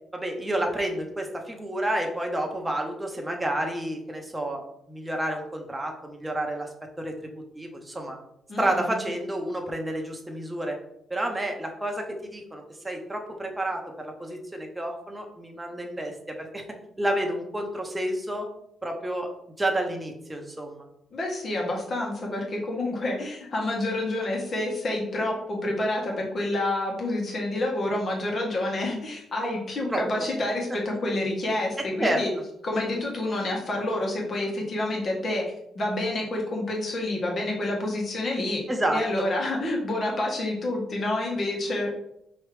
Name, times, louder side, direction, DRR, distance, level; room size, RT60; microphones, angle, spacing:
voice 1, 0.1-6.7 7.0-8.2 8.6-10.8 11.1-16.6 17.0-18.5 18.8-19.3 19.6-20.9 29.9-30.0 32.0-32.2 38.7-39.3, right 1 dB, 10° right, 2 dB, 1.0 m, -30 dB
voice 2, 8.5-8.9 21.1-32.3 32.6-35.4 35.7-38.6 38.9-41.9, left 1 dB, 45° left, -1 dB, 1.4 m, -28 dB
5.0 x 3.1 x 3.4 m, 0.74 s
cardioid pair, 90°, 0 cm